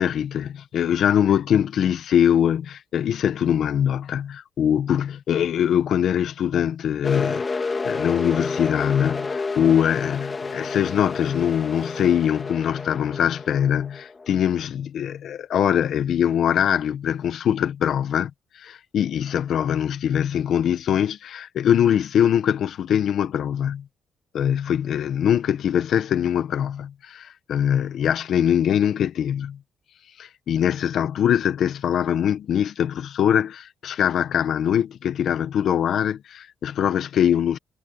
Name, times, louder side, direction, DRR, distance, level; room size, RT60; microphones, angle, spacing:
voice 1, 0.0-18.3 18.5-23.8 24.3-29.6 30.2-37.6, left 9 dB, 70° left, 1.5 m, -22 dB
sound 1, 7.0-14.7, left 4 dB, 30° left, 3.2 m, -30 dB
cardioid pair, 90°, 0 cm